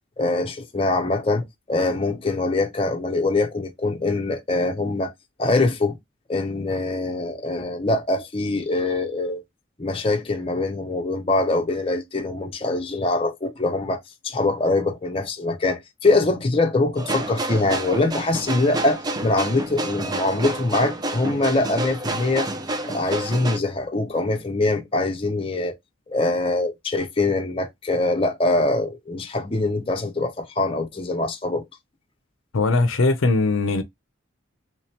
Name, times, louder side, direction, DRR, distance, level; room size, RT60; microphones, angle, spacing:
voice 1, 0.2-5.1 5.4-5.9 6.3-9.4 9.8-22.5 22.8-25.7 26.1-31.6, left 2 dB, 25° left, 0.6 m, -23 dB
sound 1, 17.0-23.6, right 2 dB, 20° right, 0.4 m, -29 dB
voice 2, 32.5-33.8, left 3 dB, 75° left, 0.6 m, -20 dB
3.2 x 2.9 x 3.1 m
head